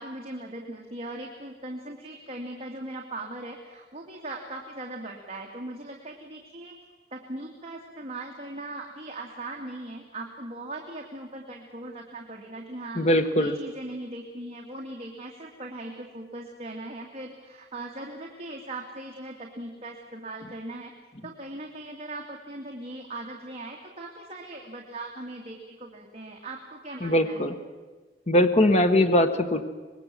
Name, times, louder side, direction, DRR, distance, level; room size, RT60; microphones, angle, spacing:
voice 1, 0.0-6.7 7.1-20.9 21.2-27.5, right 2 dB, 35° right, -1 dB, 2.3 m, -39 dB
voice 2, 13.0-13.5 27.0-27.5 28.3-29.6, left 1 dB, 40° left, 7 dB, 1.2 m, -21 dB
25.0 x 21.5 x 7.6 m, 1.3 s
head